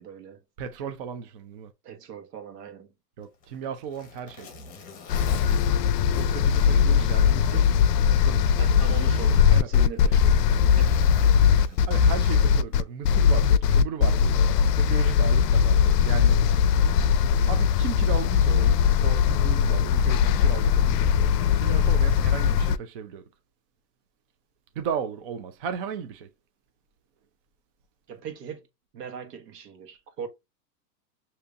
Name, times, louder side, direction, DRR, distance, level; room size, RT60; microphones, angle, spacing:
voice 1, 0.0-0.4 1.8-2.9 7.5-8.0 8.6-11.1 28.1-28.7 28.9-30.3, right 7 dB, 75° right, 1.4 m, -40 dB
voice 2, 0.6-1.7 3.2-4.5 6.1-7.6 8.2-8.6 9.5-9.7 11.7-14.4 14.7-16.4 17.5-23.3 24.8-26.3, right 7 dB, 35° right, 0.4 m, -35 dB
Zipper (clothing), 3.2-7.7 8.1-8.2 9.0-12.4 13.6-13.8, left 4 dB, 15° left, 0.8 m, -47 dB
sound 1, 5.1-22.8, left 7 dB, 75° left, 0.5 m, -20 dB
6.6 x 2.8 x 2.4 m
supercardioid pair, 160°, 48 cm